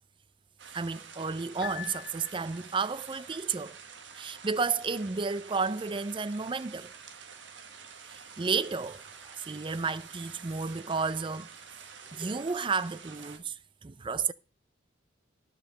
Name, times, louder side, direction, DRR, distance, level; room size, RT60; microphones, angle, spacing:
sound 1, 0.6-13.4, right 6 dB, 80° right, 1.4 m, -49 dB
voice 1, 0.7-3.8 4.2-6.9 8.0-9.0 9.3-11.5 12.1-14.3, right 4 dB, 25° right, 0.5 m, -32 dB
Piano, 1.6-2.9, left 10 dB, 60° left, 0.5 m, -42 dB
13.0 x 5.2 x 6.6 m
head